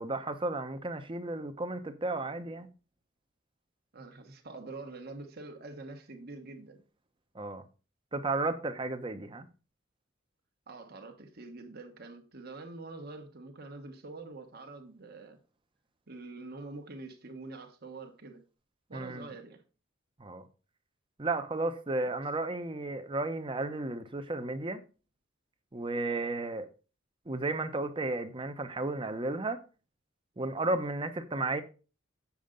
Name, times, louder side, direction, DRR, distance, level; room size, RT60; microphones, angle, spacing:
voice 1, 0.0-2.7 7.3-7.6 8.1-9.5 18.9-19.3 20.2-20.4 21.2-24.8 25.7-26.7 27.3-29.6 30.4-31.6, right 2 dB, 25° right, 0.8 m, -33 dB
voice 2, 3.9-6.8 10.7-15.4 16.1-18.4 18.9-19.6, right 3 dB, 50° right, 1.3 m, -45 dB
7.7 x 7.1 x 3.8 m
head